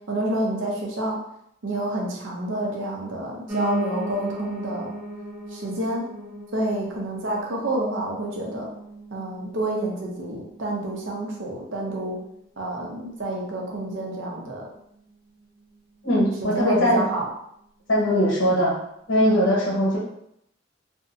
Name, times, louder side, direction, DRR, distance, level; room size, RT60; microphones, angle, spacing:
voice 1, 0.1-1.2 1.6-4.9 5.5-6.0 6.5-8.7 9.1-12.2 12.6-14.7 16.4-17.3, right 1 dB, 80° right, -1 dB, 0.6 m, -28 dB
Piano, 3.5-12.6 13.0-14.2 14.4-14.5 14.8-14.9 15.1-15.2 15.7-15.8, right 1 dB, 15° right, 0.5 m, -37 dB
voice 2, 16.0-17.0 17.9-18.7 19.1-20.0, equal, 80° left, -5 dB, 1.1 m, -20 dB
2.6 x 2.1 x 2.5 m, 0.75 s
head